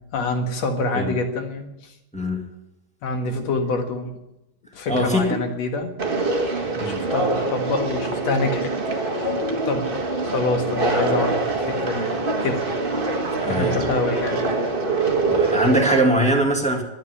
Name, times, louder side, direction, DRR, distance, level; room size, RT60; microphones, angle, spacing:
voice 1, 0.1-1.9 3.0-4.1 4.7-5.9 6.8-8.7 9.0-9.3 9.7-12.1 12.4-12.7 13.4-14.5, left 3 dB, 60° left, 5 dB, 2.7 m, -26 dB
voice 2, 2.1-2.5 4.9-5.4 6.6-7.1 13.4-14.0 15.3-16.8, right 1 dB, 5° left, 0 dB, 0.7 m, -22 dB
Conversation, 6.0-16.0, right 3 dB, 35° right, 0.9 m, -24 dB
12.5 x 9.0 x 9.8 m, 0.91 s
omnidirectional pair, 3.8 m